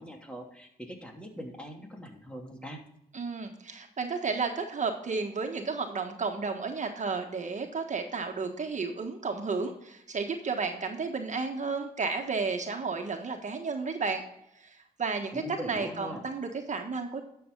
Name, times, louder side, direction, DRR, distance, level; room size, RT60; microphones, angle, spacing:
voice 1, 0.0-2.8 15.3-16.2, equal, 5° left, 2 dB, 2.7 m, -41 dB
voice 2, 3.1-14.2 14.5-17.2, right 4 dB, 50° right, 4 dB, 1.4 m, -32 dB
11.0 x 7.0 x 3.9 m, 0.78 s
supercardioid pair, 50°, 16 cm